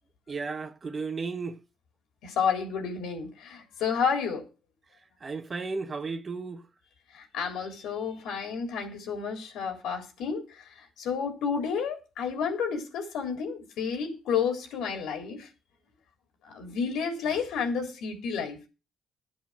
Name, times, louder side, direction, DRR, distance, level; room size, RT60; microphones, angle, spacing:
voice 1, 0.3-1.6 5.2-6.6, right 4 dB, 35° right, 1.3 m, -34 dB
voice 2, 2.2-4.5 7.1-10.4 11.0-15.5 16.5-18.6, left 6 dB, 85° left, 3.6 m, -30 dB
11.0 x 8.1 x 6.2 m
cardioid pair, 90°, 0 cm